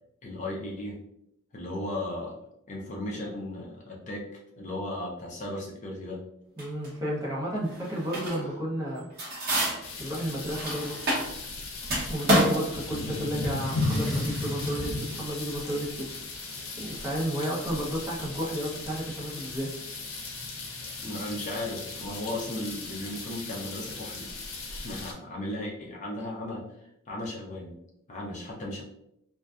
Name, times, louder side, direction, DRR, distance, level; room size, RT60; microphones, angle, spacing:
voice 1, 0.2-1.0 1.5-2.4 2.7-4.3 4.6-6.2 8.4-8.5 21.0-24.3 24.7-27.8 28.1-28.8, left 1 dB, 35° left, -2 dB, 0.4 m, -36 dB
voice 2, 6.6-9.1 10.0-10.9 12.1-16.1 16.4-16.5 16.8-19.7, equal, 15° right, -5 dB, 0.6 m, -32 dB
sound 1, 6.6-6.9 7.6-8.6 8.9-11.5 11.8-24.2, equal, 50° right, 0.7 m, -31 dB
sound 2, 9.8-25.1, left 2 dB, 90° left, 0.6 m, -36 dB
2.5 x 2.2 x 2.3 m, 0.78 s
head